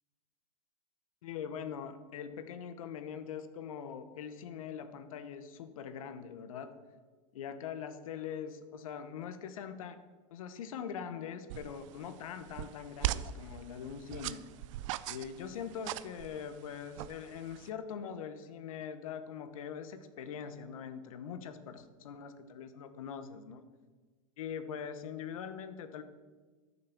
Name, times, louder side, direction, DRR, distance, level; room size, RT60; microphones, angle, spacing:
voice 1, 1.2-6.7 7.3-10.0 10.3-14.5 15.1-23.6 24.4-26.0, left 7 dB, 80° left, 10 dB, 1.0 m, -42 dB
sound 1, 11.5-17.7, right 14 dB, 65° right, 0.5 m, -40 dB
10.0 x 6.6 x 7.1 m, 1.4 s
supercardioid pair, 120°, 17 cm